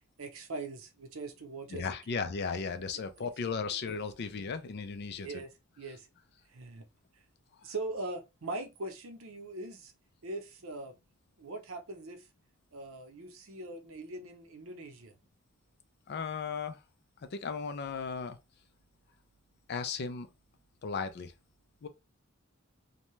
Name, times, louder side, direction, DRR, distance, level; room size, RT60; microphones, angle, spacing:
voice 1, 0.2-2.2 3.2-3.3 4.2-4.3 5.2-6.1 6.5-6.9 7.1-7.2 7.6-9.9 10.2-11.0 11.4-12.3 12.7-15.1, right 2 dB, 75° right, 0.7 m, -41 dB
voice 2, 1.7-5.3 16.1-16.8 17.3-18.4 19.7-20.3 20.8-21.3 21.8-21.9, left 5 dB, 55° left, 0.4 m, -35 dB
2.7 x 2.2 x 3.0 m
head